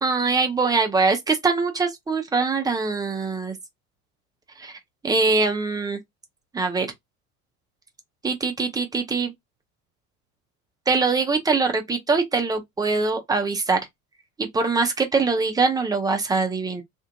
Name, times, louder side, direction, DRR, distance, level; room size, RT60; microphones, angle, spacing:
voice 1, 0.0-3.5 4.6-4.8 5.0-6.0 6.5-6.9 8.2-9.3 10.9-13.8 14.4-16.8, right 4 dB, 10° right, 0.4 m, -23 dB
2.8 x 2.4 x 2.5 m
figure-of-eight pair, 70°, 46 cm